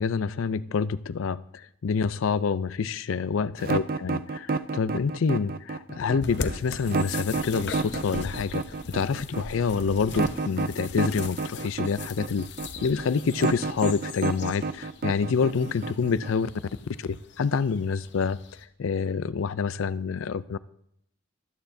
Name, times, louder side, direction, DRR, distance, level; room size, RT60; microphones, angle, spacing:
voice 1, 0.0-8.6 8.9-12.5 12.8-16.5 17.0-17.1 17.4-18.4 18.8-20.6, left 5 dB, 85° left, 17 dB, 0.4 m, -27 dB
sound 1, 3.6-16.5, right 4 dB, 45° right, 0.4 m, -30 dB
sound 2, 6.2-18.6, left 4 dB, 60° left, 0.7 m, -40 dB
23.0 x 9.0 x 2.7 m, 0.74 s
head